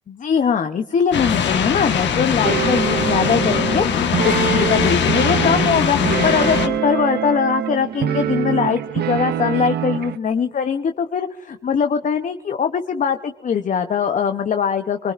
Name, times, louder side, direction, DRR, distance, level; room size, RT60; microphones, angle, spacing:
voice 1, 0.1-15.1, left 7 dB, 40° left, 7 dB, 0.6 m, -21 dB
sound 1, 1.1-6.7, left 7 dB, 65° left, 1.2 m, -21 dB
sound 2, 2.4-10.2, right 10 dB, 55° right, 0.4 m, -24 dB
23.5 x 20.0 x 2.4 m, 1.1 s
cardioid pair, 90°, 20 cm